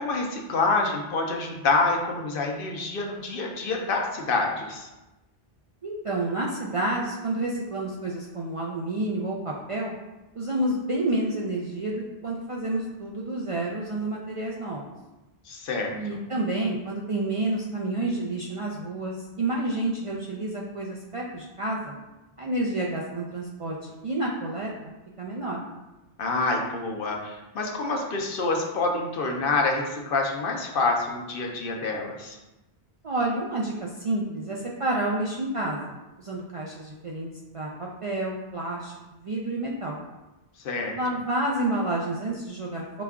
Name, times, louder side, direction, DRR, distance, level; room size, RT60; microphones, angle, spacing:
voice 1, 0.0-4.9 15.5-16.0 26.2-32.4 40.6-41.0, left 3 dB, 65° left, 1 dB, 0.8 m, -27 dB
voice 2, 5.8-9.9 10.4-14.8 15.9-21.9 22.4-24.7 25.2-25.6 33.0-37.3 37.5-40.0 41.0-43.0, right 2 dB, 50° right, -3 dB, 0.4 m, -29 dB
5.0 x 2.3 x 3.5 m, 1.0 s
omnidirectional pair, 1.0 m